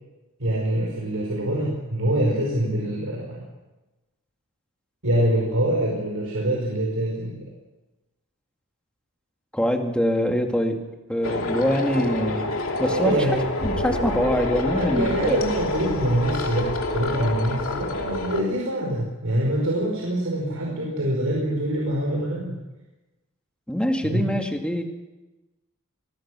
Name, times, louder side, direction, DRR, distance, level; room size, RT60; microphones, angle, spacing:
voice 1, 0.4-3.4 5.0-7.5 12.9-13.4 14.7-22.5 24.0-24.3, right 1 dB, 75° right, -2 dB, 5.0 m, -25 dB
voice 2, 9.5-10.8 11.1-12.5 12.8-13.1 13.6-15.4 23.7-24.8, equal, 5° left, 3 dB, 2.3 m, -24 dB
sound 1, 11.2-18.4, left 2 dB, 70° left, 2.8 m, -28 dB
25.0 x 19.5 x 6.3 m, 1.1 s
head